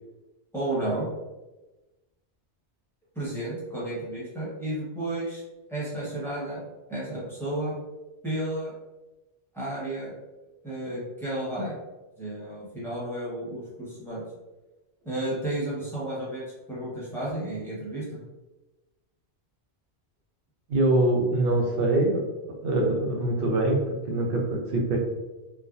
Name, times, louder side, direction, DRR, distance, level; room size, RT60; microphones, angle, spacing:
voice 1, 0.5-1.1 3.1-5.4 5.7-6.6 6.9-7.7 8.2-8.7 9.5-10.1 10.6-11.8 12.2-14.2 15.0-18.2, right 1 dB, ahead, -10 dB, 1.1 m, -32 dB
voice 2, 20.7-22.2 22.6-25.0, right 2 dB, 60° right, -1 dB, 0.8 m, -24 dB
3.2 x 2.1 x 2.5 m, 1.1 s
omnidirectional pair, 1.1 m